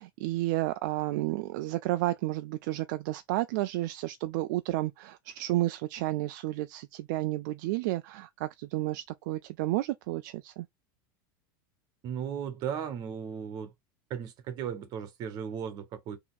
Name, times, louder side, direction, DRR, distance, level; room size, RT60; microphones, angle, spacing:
voice 1, 0.0-10.7, right 17 dB, 55° right, 0.4 m, -31 dB
voice 2, 12.0-13.7 14.1-16.2, right 8 dB, 35° right, 1.1 m, -36 dB
4.0 x 2.9 x 4.0 m
supercardioid pair, 170°, 12 cm